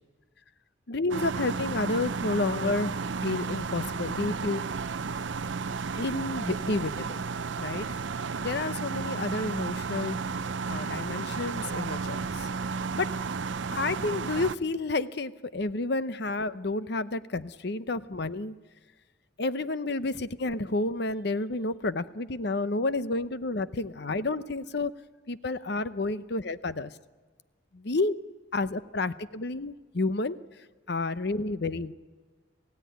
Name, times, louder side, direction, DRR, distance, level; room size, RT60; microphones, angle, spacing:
voice 1, 0.9-4.6 6.0-7.2 7.6-8.0 8.4-10.2 10.7-12.5 13.0-13.1 13.7-18.6 19.4-24.9 25.3-26.9 27.7-28.2 28.5-30.4 30.9-31.9, left 2 dB, 55° left, 14 dB, 0.8 m, -30 dB
sound 1, 1.1-14.5, right 5 dB, 70° right, 0.6 m, -33 dB
27.0 x 16.5 x 9.3 m, 1.4 s
head